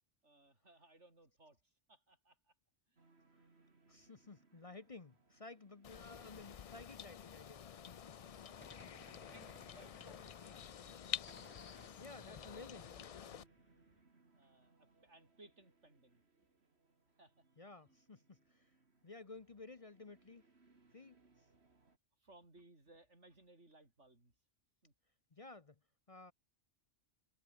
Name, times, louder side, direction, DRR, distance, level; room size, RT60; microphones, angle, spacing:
voice 1, 0.2-2.5 2.9-3.1 8.5-10.6 14.3-16.2 17.2-17.4 17.8-18.0 22.2-24.3 24.8-24.9, right 2 dB, 85° right, 5.7 m, -64 dB
sound 1, 3.0-22.0, right 3 dB, 65° right, 3.0 m, -71 dB
voice 2, 3.9-8.6 12.0-12.9 17.6-18.7 19.0-20.4 20.9-21.4 25.3-25.8 26.1-26.3, left 3 dB, 35° left, 0.9 m, -55 dB
sound 2, 5.8-13.4, left 8 dB, 55° left, 0.4 m, -49 dB
Gunshot gunfire, 8.6-11.0 11.3-14.0, left 1 dB, 10° left, 2.3 m, -63 dB
omnidirectional pair, 1.2 m